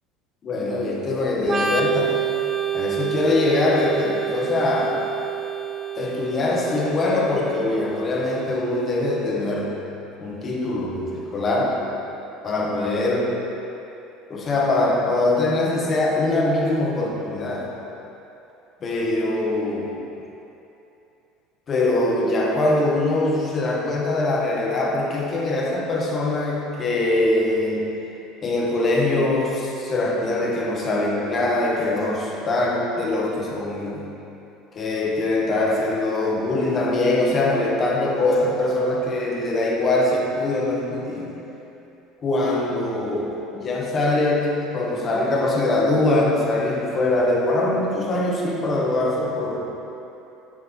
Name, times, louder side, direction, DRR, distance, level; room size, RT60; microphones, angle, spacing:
voice 1, 0.4-2.2 2.7-5.0 6.0-9.8 10.2-11.8 12.4-13.3 14.3-17.7 18.8-19.9 21.7-27.9 28.4-34.0 34.7-41.3 42.2-43.3 43.5-49.7, left 2 dB, 30° left, -2 dB, 1.0 m, -22 dB
Organ, 1.4-8.9, right 8 dB, 25° right, 0.4 m, -28 dB
6.7 x 6.4 x 3.0 m, 2.9 s
supercardioid pair, 125°, 0 cm